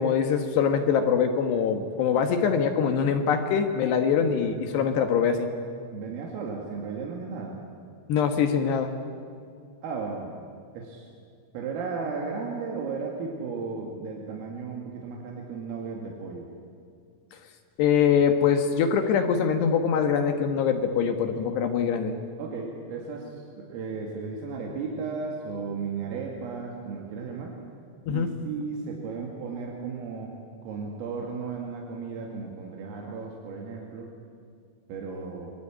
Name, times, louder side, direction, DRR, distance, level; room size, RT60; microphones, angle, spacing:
voice 1, 0.0-5.5 8.1-8.9 17.8-22.1 28.1-28.3, left 7 dB, 65° left, 6 dB, 3.0 m, -23 dB
voice 2, 5.9-7.6 9.8-10.3 10.7-11.1 11.5-16.5 22.4-27.5 28.1-30.3 30.6-34.1 34.9-35.5, right 5 dB, 85° right, -1 dB, 5.0 m, -35 dB
26.5 x 23.0 x 8.9 m, 2.3 s
omnidirectional pair, 5.9 m